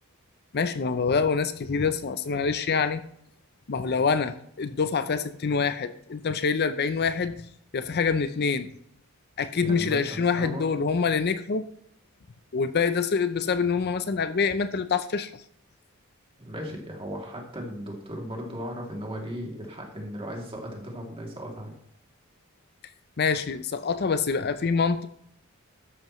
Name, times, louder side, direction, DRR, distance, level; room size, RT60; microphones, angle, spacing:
voice 1, 0.5-3.0 3.7-7.4 7.7-8.7 9.4-11.7 12.5-15.4 23.2-25.1, left 5 dB, 50° left, 12 dB, 0.6 m, -26 dB
voice 2, 9.6-10.6 16.4-21.7, equal, 25° right, 0 dB, 2.7 m, -36 dB
13.0 x 10.5 x 3.1 m, 0.69 s
head